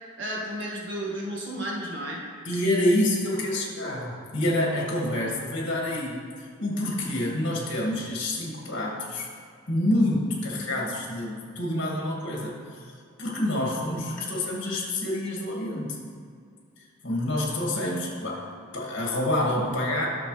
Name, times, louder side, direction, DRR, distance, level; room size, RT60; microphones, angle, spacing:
voice 1, 0.2-2.2 2.5-2.6, right 1 dB, 60° right, -3 dB, 1.6 m, -33 dB
voice 2, 2.4-9.3 9.7-12.8 13.2-16.0 17.0-18.5 18.7-20.1, left 1 dB, 55° left, -3 dB, 2.2 m, -27 dB
11.5 x 6.9 x 3.3 m, 2.2 s
head